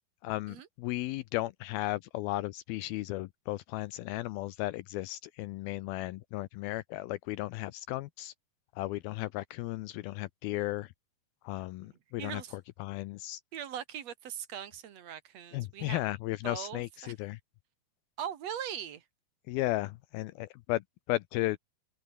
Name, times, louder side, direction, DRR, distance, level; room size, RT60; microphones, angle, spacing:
voice 1, 0.2-8.3 8.8-10.9 11.4-12.4 12.8-13.4 15.5-17.4 19.5-20.8 21.1-21.6, left 17 dB, 90° left, 2.2 m, -35 dB
voice 2, 11.8-12.5 13.5-16.0 16.4-17.1 18.2-19.0, right 9 dB, 55° right, 2.0 m, -41 dB
omnidirectional pair, 5.0 m